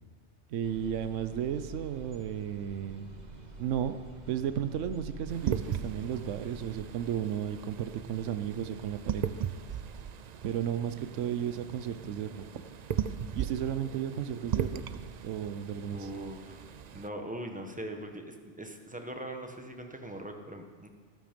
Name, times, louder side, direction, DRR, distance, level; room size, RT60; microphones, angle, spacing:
voice 1, 0.5-3.1 3.6-4.0 4.3-9.3 10.4-12.4 13.4-16.1, right 9 dB, 90° right, 11 dB, 1.0 m, -34 dB
sound 1, 0.6-6.8, right 3 dB, 40° right, 1.3 m, -47 dB
sound 2, 4.2-9.3 10.0-10.7, left 1 dB, 30° left, 3.0 m, -57 dB
sound 3, 5.3-17.1, right 8 dB, 60° right, 0.4 m, -38 dB
voice 2, 15.9-16.6 16.9-20.9, right 1 dB, 5° right, 4 dB, 1.1 m, -41 dB
13.5 x 12.5 x 5.2 m, 1.5 s
omnidirectional pair, 1.2 m